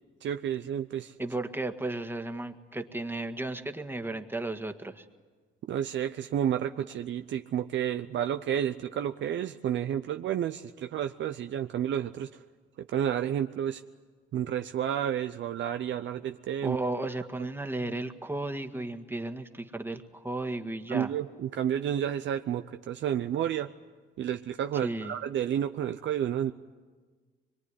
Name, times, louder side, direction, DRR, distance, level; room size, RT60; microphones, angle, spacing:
voice 1, 0.2-1.1 5.7-12.4 12.8-13.8 14.3-16.8 17.4-17.5 20.9-23.7 24.2-26.5, right 10 dB, 70° right, 7 dB, 0.7 m, -31 dB
voice 2, 1.2-5.0 16.6-21.1 24.8-25.1, right 2 dB, 10° right, 6 dB, 1.7 m, -34 dB
24.0 x 22.5 x 9.9 m, 1.4 s
cardioid pair, 90°, 20 cm